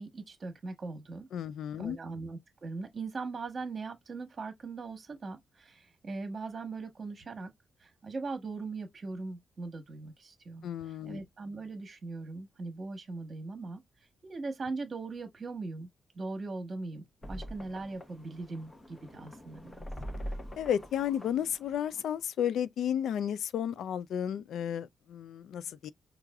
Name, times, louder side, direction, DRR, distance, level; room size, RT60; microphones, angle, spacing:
voice 1, 0.0-1.3 1.8-7.5 7.8-10.7 11.1-13.8 14.2-15.9 16.1-19.9, right 3 dB, 40° right, 1.1 m, -40 dB
voice 2, 1.3-2.0 10.6-11.2 20.6-25.9, left 9 dB, 80° left, 0.3 m, -33 dB
sound 1, 17.2-22.2, equal, 20° left, 0.8 m, -44 dB
4.7 x 2.4 x 2.3 m
cardioid pair, 115°, 0 cm